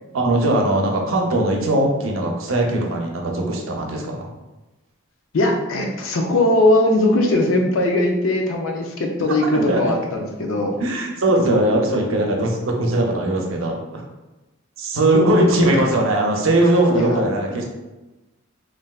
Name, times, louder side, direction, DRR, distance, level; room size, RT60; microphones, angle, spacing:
voice 1, 0.1-4.3 9.5-9.9 10.8-14.1 14.8-17.7, right 1 dB, 80° right, 1 dB, 0.6 m, -20 dB
voice 2, 5.3-10.7 15.1-15.9 16.9-17.2, left 1 dB, 75° left, 2 dB, 0.5 m, -19 dB
3.3 x 2.5 x 2.3 m, 1.1 s
head